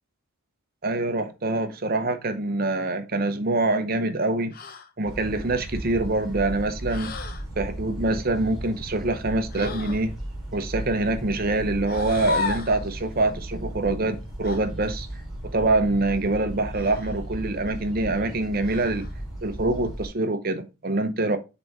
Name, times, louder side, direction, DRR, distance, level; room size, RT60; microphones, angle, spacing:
voice 1, 0.8-4.6 5.0-7.1 7.6-10.1 10.5-15.1 15.5-19.1 19.4-21.4, right 2 dB, 40° right, 0.8 m, -25 dB
sound 1, 4.5-4.9 6.9-7.5 9.5-10.1 11.8-12.8 14.4-14.6 16.7-17.2 18.6-19.1, left 4 dB, 40° left, 0.7 m, -33 dB
sound 2, 5.0-20.1, right 1 dB, ahead, 2.8 m, -36 dB
6.8 x 3.5 x 4.1 m
head